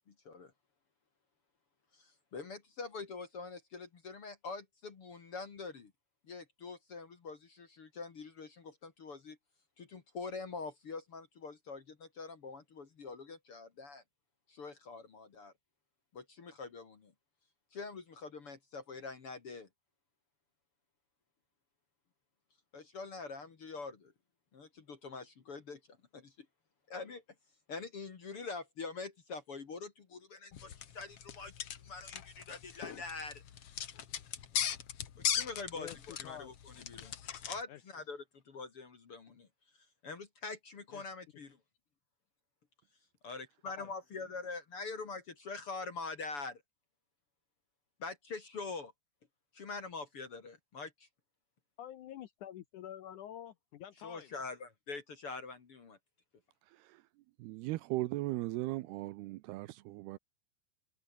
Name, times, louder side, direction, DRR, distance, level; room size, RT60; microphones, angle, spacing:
voice 1, 0.1-0.5 1.9-5.9 6.3-9.4 9.8-14.0 14.5-15.5 16.1-17.1 17.7-19.7 22.7-24.1 24.5-25.8 26.1-26.5 26.9-27.2 27.7-31.5 31.8-33.4 35.2-37.2 37.4-39.5 40.0-41.6 43.2-46.6 48.0-48.9 49.5-51.1 54.0-56.0, left 4 dB, 40° left, 2.3 m, -44 dB
sound 1, 30.5-37.6, left 9 dB, 60° left, 1.6 m, -39 dB
voice 2, 51.8-54.3, left 11 dB, 80° left, 1.8 m, -47 dB
voice 3, 57.4-60.2, right 18 dB, 80° right, 2.5 m, -37 dB
omnidirectional pair, 5.0 m